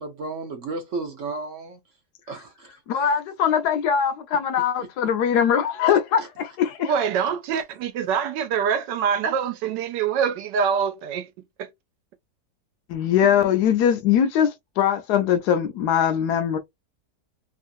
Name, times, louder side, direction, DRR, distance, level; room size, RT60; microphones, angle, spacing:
voice 1, 0.0-1.8 2.3-3.1 4.8-4.9 6.2-6.3 7.5-7.6, right 3 dB, 60° right, 0.8 m, -34 dB
voice 2, 2.9-6.9 12.9-16.6, left 8 dB, 75° left, 1.1 m, -21 dB
voice 3, 6.8-11.3 11.6-11.7, right 7 dB, 85° right, 1.3 m, -25 dB
3.1 x 2.4 x 2.6 m
omnidirectional pair, 1.9 m